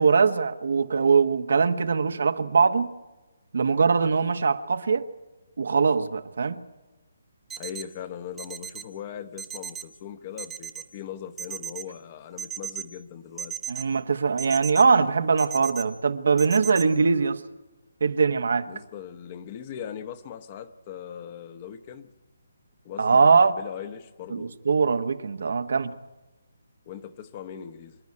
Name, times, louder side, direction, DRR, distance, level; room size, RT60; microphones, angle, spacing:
voice 1, 0.0-2.9 3.5-5.0 5.6-6.6 13.7-17.4 18.0-18.7 23.0-23.5 24.3-25.9, right 5 dB, 65° right, 1.1 m, -22 dB
sound 1, 7.5-7.8 8.4-8.8 9.4-9.8 10.4-10.8 11.4-11.8 12.4-12.8 13.4-13.8 14.4-14.8 15.4-15.8 16.4-16.8, right 8 dB, 10° right, 0.9 m, -35 dB
voice 2, 7.6-13.6 18.7-22.1 22.8-24.5 26.9-28.0, left 9 dB, 35° left, 1.1 m, -39 dB
25.5 x 10.5 x 9.8 m
figure-of-eight pair, 150°, 0 cm